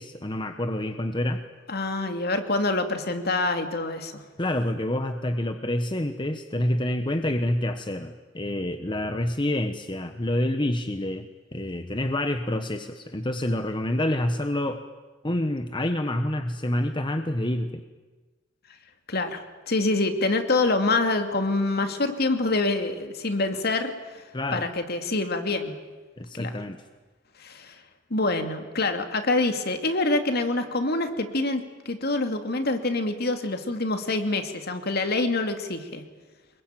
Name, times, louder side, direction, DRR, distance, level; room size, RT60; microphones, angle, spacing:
voice 1, 0.0-1.4 4.4-11.3 11.5-14.8 15.2-17.8 24.3-24.7 26.2-26.8, left 1 dB, 25° left, 8 dB, 1.2 m, -27 dB
voice 2, 1.7-4.2 19.1-23.9 24.5-25.7 26.4-26.5 27.4-27.7 28.1-36.0, left 2 dB, 55° left, 7 dB, 2.6 m, -26 dB
25.5 x 22.0 x 9.2 m, 1.3 s
head